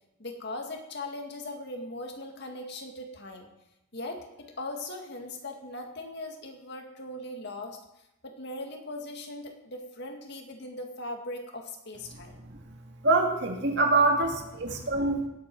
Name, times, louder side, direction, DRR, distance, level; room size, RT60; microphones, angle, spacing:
voice 1, 0.2-3.5 3.9-4.3 4.6-7.8 8.2-12.4 14.7-15.2, left 2 dB, 55° left, 3 dB, 2.0 m, -39 dB
voice 2, 13.0-15.3, right 3 dB, 55° right, 2 dB, 2.1 m, -24 dB
17.5 x 8.3 x 4.7 m, 0.87 s
head